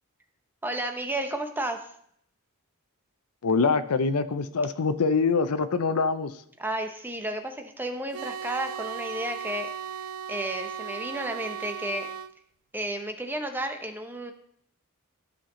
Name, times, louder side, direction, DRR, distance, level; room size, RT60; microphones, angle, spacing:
voice 1, 0.6-1.9 6.6-9.7 10.3-12.1 12.7-14.3, right 1 dB, 10° right, 6 dB, 0.7 m, -32 dB
voice 2, 3.4-6.3, left 4 dB, 85° left, 11 dB, 0.6 m, -24 dB
sound 1, 8.1-12.3, right 8 dB, 90° right, 0.4 m, -36 dB
12.5 x 5.8 x 3.8 m, 0.68 s
head